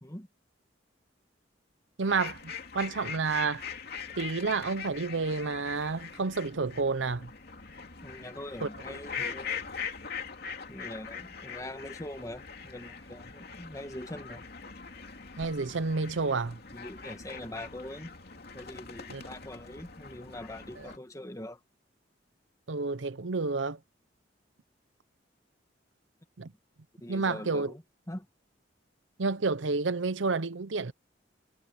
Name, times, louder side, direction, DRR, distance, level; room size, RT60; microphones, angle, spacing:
sound 1, 2.0-21.0, left 6 dB, 55° left, 2.8 m, -42 dB
voice 1, 2.0-3.7 4.2-7.3 8.6-8.7 15.4-16.6 19.1-19.2 22.7-23.8 26.4-26.5 27.1-27.7 29.2-30.9, right 4 dB, 85° right, 0.8 m, -30 dB
voice 2, 8.0-9.7 10.7-14.5 16.7-18.1 18.5-21.6 27.0-28.3, left 1 dB, 20° left, 1.8 m, -43 dB
head